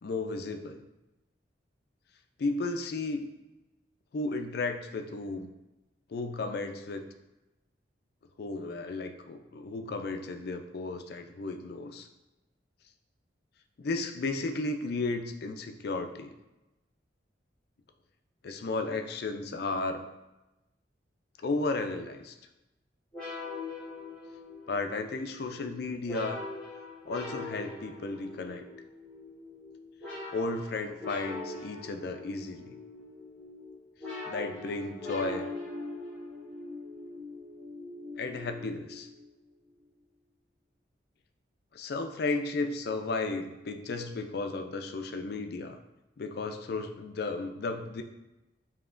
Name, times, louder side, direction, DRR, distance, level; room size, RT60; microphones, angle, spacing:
voice 1, 0.0-0.8 2.4-3.3 4.1-5.5 6.1-7.1 8.4-12.1 13.8-16.3 18.4-20.1 21.4-22.3 24.7-26.4 27.1-28.6 30.3-32.7 34.3-35.5 38.2-39.1 41.7-45.8 46.2-48.0, left 3 dB, 55° left, 6 dB, 0.4 m, -34 dB
sound 1, 23.1-39.3, left 2 dB, 5° left, 1.5 m, -42 dB
6.8 x 2.9 x 2.5 m, 0.99 s
head